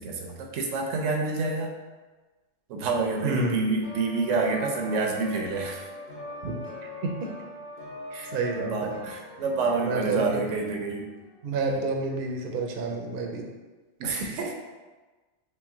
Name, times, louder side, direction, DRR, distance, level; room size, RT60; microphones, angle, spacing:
voice 1, 0.0-1.7 2.7-5.9 8.1-11.1 14.0-14.5, right 3 dB, 80° right, 1 dB, 1.0 m, -28 dB
voice 2, 3.2-3.6 6.4-6.5 7.0-7.1 8.3-8.9 9.8-10.4 11.4-13.4 14.0-14.1, right 3 dB, 55° right, 1 dB, 0.7 m, -29 dB
sound 1, 3.8-11.4, left 2 dB, 45° left, 0.7 m, -42 dB
3.3 x 3.2 x 3.5 m, 1.3 s
omnidirectional pair, 1.3 m